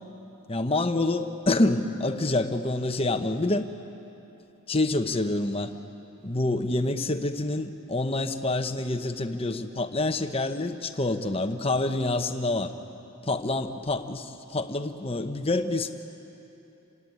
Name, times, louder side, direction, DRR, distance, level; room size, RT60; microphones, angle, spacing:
voice 1, 0.5-3.6 4.7-5.8 6.2-12.7 13.2-14.2 14.5-15.9, left 2 dB, 25° left, 8 dB, 1.0 m, -27 dB
28.5 x 18.0 x 9.6 m, 3.0 s
head